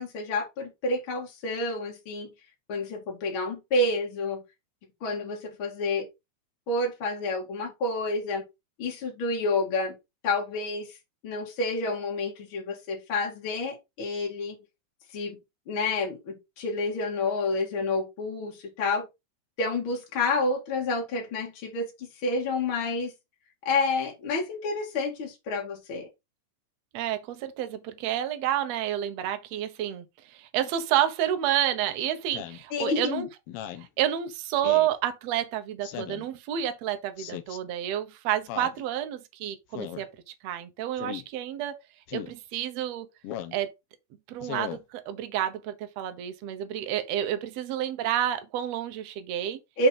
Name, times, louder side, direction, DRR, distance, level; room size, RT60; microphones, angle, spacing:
voice 1, 0.0-2.3 2.7-4.4 5.0-6.1 6.7-8.4 8.8-10.0 10.2-11.0 11.2-14.6 15.1-15.4 15.7-19.1 19.6-23.1 23.7-26.1 32.7-33.3 49.8-49.9, left 2 dB, 45° left, 2.4 m, -29 dB
voice 2, 26.9-33.3 33.8-40.1 40.4-41.8 42.1-43.1 43.5-43.7 44.3-49.6, right 11 dB, 65° right, 1.9 m, -29 dB
Speech synthesizer, 32.3-32.6 33.5-33.9 34.6-34.9 35.8-36.3 37.2-37.6 38.5-38.8 39.7-40.1 41.0-41.2 42.1-42.3 43.2-43.6 44.4-44.8, left 11 dB, 85° left, 1.3 m, -37 dB
5.9 x 5.2 x 4.2 m
omnidirectional pair, 3.6 m